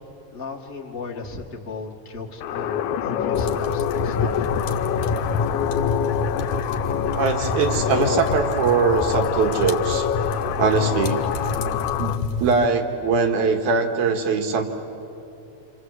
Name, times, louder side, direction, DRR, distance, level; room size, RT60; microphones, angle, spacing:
voice 1, 0.3-4.5, left 4 dB, 20° left, -1 dB, 1.9 m, -35 dB
sound 1, 2.4-12.2, left 9 dB, 90° left, 2.3 m, -26 dB
sound 2, 3.3-12.7, left 3 dB, 60° left, 2.2 m, -28 dB
voice 2, 7.2-10.1 10.6-11.3 12.0-12.1 12.4-14.6, right 4 dB, 85° right, 5 dB, 3.3 m, -21 dB
28.0 x 26.0 x 8.1 m, 2.8 s
omnidirectional pair, 3.4 m